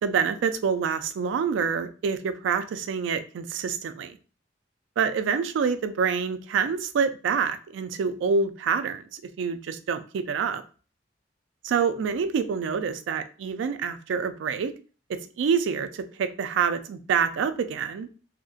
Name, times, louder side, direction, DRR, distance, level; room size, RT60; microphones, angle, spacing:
voice 1, 0.0-4.2 5.0-10.6 11.6-14.7 15.1-18.2, right 6 dB, 80° right, 0.3 m, -27 dB
2.8 x 2.4 x 2.6 m
head